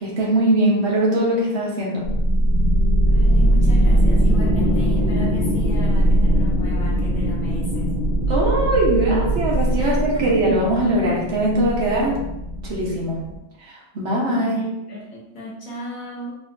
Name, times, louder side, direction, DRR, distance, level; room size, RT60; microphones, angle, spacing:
voice 1, 0.0-2.1 8.3-12.2 12.6-13.3 13.6-14.6, right 1 dB, 55° right, -3 dB, 1.0 m, -21 dB
sound 1, 2.0-13.4, right 1 dB, 45° left, 0.9 m, -20 dB
voice 2, 3.0-7.9 9.8-10.4 14.4-16.4, equal, 65° left, -4 dB, 1.2 m, -34 dB
3.6 x 2.7 x 2.6 m, 0.90 s
omnidirectional pair, 1.6 m